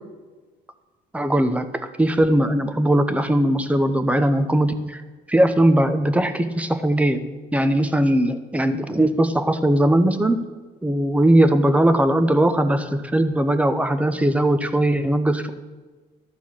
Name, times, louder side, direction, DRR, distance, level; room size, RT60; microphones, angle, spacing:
voice 1, 1.1-5.0 5.3-7.2 7.5-10.4 10.8-15.5, right 1 dB, 10° right, 9 dB, 0.7 m, -19 dB
13.0 x 4.4 x 7.3 m, 1.3 s
cardioid pair, 110°, 17 cm